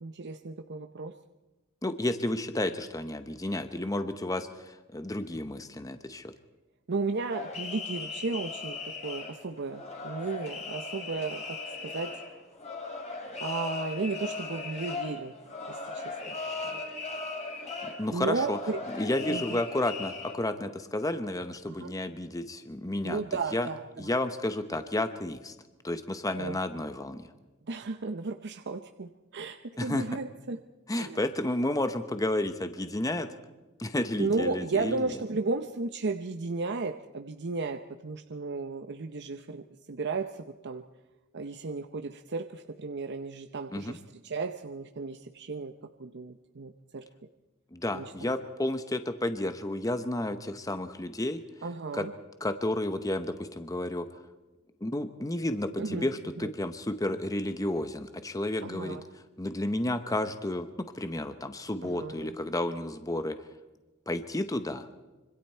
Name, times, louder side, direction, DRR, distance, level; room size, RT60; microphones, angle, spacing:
voice 1, 0.0-1.1 6.9-12.2 13.4-15.3 15.7-16.2 16.6-16.8 18.1-18.8 19.2-19.6 21.7-21.9 23.0-24.1 26.4-26.6 27.7-30.6 30.9-31.2 34.2-40.8 41.3-45.7 46.0-47.0 47.9-48.4 51.6-52.1 55.8-56.5 58.6-59.0 61.8-62.3, right 3 dB, 55° right, 7 dB, 0.8 m, -34 dB
voice 2, 1.8-6.3 17.8-18.6 18.9-23.2 23.5-23.7 24.0-25.5 25.8-27.3 29.8-30.0 30.9-33.3 33.8-35.0 43.7-44.0 47.7-51.4 51.9-52.1 52.4-54.1 54.8-59.0 59.4-60.7 60.9-63.4 64.1-64.9, left 1 dB, 15° left, 9 dB, 0.9 m, -31 dB
sound 1, 7.3-20.3, left 3 dB, 30° left, 4.4 m, -38 dB
26.0 x 25.0 x 4.5 m, 1.1 s
head